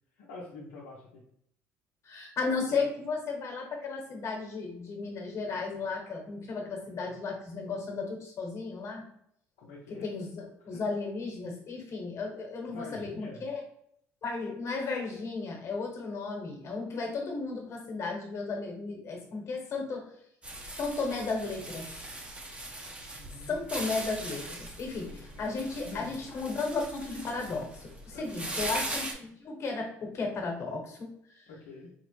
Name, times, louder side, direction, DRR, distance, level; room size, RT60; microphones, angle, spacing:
voice 1, 0.2-1.1 2.7-2.8 9.6-10.1 10.6-10.9 12.7-13.4 23.1-23.6 24.9-25.5 25.8-26.1 28.1-28.7 31.5-31.9, left 3 dB, 85° left, -6 dB, 0.8 m, -46 dB
voice 2, 2.0-9.0 9.9-13.6 14.2-20.1 20.8-21.9 23.5-31.4, left 4 dB, 50° left, 1 dB, 1.3 m, -34 dB
sound 1, 20.4-29.1, right 1 dB, 20° right, 0.8 m, -40 dB
4.4 x 2.0 x 3.1 m, 0.71 s
supercardioid pair, 80°, 6 cm